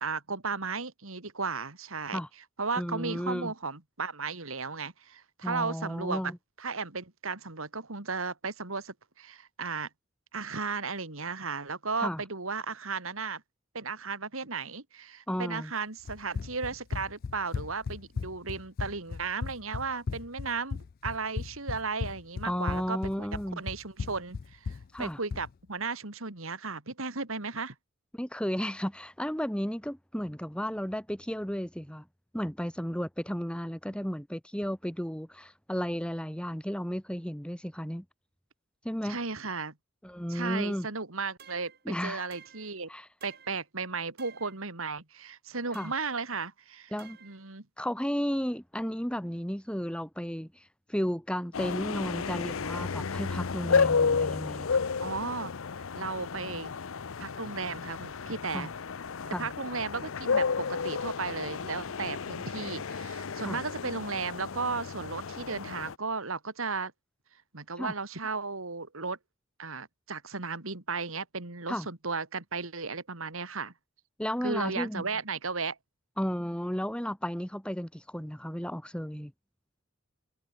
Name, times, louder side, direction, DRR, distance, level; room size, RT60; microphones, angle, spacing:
voice 1, 0.0-2.2 2.6-6.3 6.6-9.9 10.3-13.4 13.7-23.3 23.6-27.7 39.0-39.7 40.3-42.9 43.2-46.9 47.2-47.7 55.0-55.5 55.9-56.7 57.2-58.7 59.3-66.9 67.5-69.2 69.6-73.7 74.4-75.8, right 4 dB, 75° right, 2.6 m, -35 dB
voice 2, 2.8-3.5 5.4-6.4 12.0-12.2 15.3-15.7 22.4-23.6 24.9-25.2 28.1-32.0 32.3-38.1 38.8-39.2 40.0-40.9 41.9-42.2 42.9-43.1 45.7-45.9 46.9-47.2 47.8-54.8 58.5-58.7 59.3-59.5 63.4-63.6 67.8-67.9 71.7-71.9 74.2-75.1 76.2-79.3, equal, 5° left, 2.0 m, -33 dB
Run, 16.1-25.5, left 5 dB, 45° left, 0.3 m, -36 dB
sound 1, 41.4-41.8 42.3-42.8 43.2-43.7 44.2-44.6 45.7-46.2 47.0-47.4, right 8 dB, 50° right, 5.5 m, -53 dB
sound 2, 51.5-65.9, left 5 dB, 75° left, 0.7 m, -32 dB
head